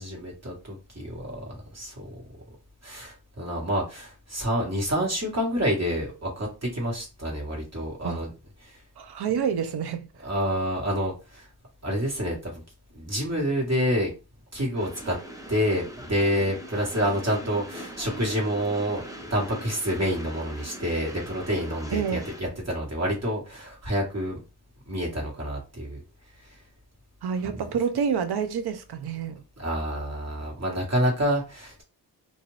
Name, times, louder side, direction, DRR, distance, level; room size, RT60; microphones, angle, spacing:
voice 1, 0.0-2.1 2.8-8.3 8.6-8.7 10.2-11.5 11.8-12.6 12.9-14.1 14.5-15.2 15.5-19.0 19.3-24.4 24.9-26.0 29.6-31.8, equal, 35° right, 1.5 m, -28 dB
voice 2, 9.0-10.1 21.9-22.2 27.2-29.4, right 7 dB, 65° right, 0.6 m, -28 dB
Train, 14.8-22.4, right 1 dB, 10° right, 0.7 m, -41 dB
2.6 x 2.5 x 3.1 m
cardioid pair, 75°, 43 cm